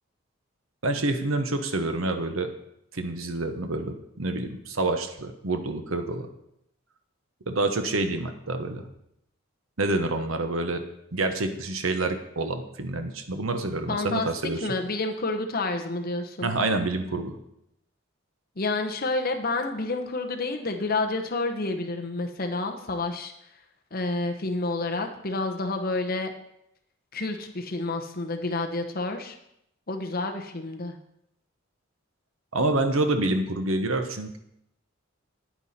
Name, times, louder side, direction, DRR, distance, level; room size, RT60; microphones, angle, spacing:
voice 1, 0.8-2.5 2.9-6.3 7.5-8.9 9.8-10.8 11.1-14.7 16.4-17.4 32.5-34.4, right 2 dB, 75° right, 7 dB, 1.0 m, -27 dB
voice 2, 13.9-14.3 14.6-16.5 18.6-23.3 23.9-26.3 27.1-29.4 29.9-31.0, left 2 dB, 45° left, 4 dB, 1.0 m, -29 dB
9.5 x 9.0 x 4.3 m, 0.77 s
head